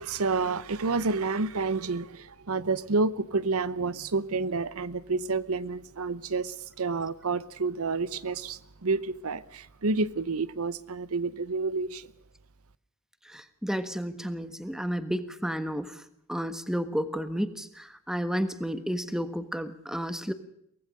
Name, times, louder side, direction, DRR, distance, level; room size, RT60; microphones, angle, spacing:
voice 1, 0.0-12.1, right 3 dB, 70° right, 0.8 m, -29 dB
voice 2, 13.2-16.0 16.3-20.3, equal, ahead, 1.4 m, -32 dB
24.0 x 18.5 x 6.5 m
head